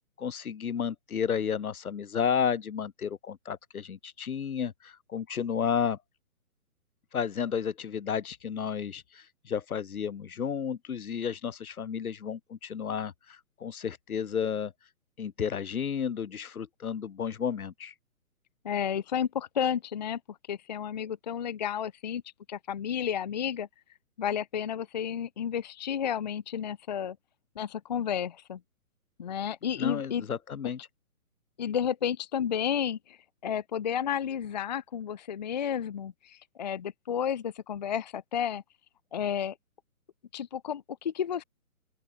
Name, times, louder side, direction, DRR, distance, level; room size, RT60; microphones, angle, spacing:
voice 1, 0.2-6.0 7.1-14.7 15.2-17.9 29.8-30.8, left 7 dB, 70° left, 1.8 m, -32 dB
voice 2, 18.6-22.2 22.5-23.7 24.2-27.2 27.6-28.6 29.2-30.2 31.6-33.2 33.4-38.6 39.1-39.5 40.3-41.4, left 8 dB, 30° left, 0.6 m, -32 dB
open air
hypercardioid pair, 155°, 44 cm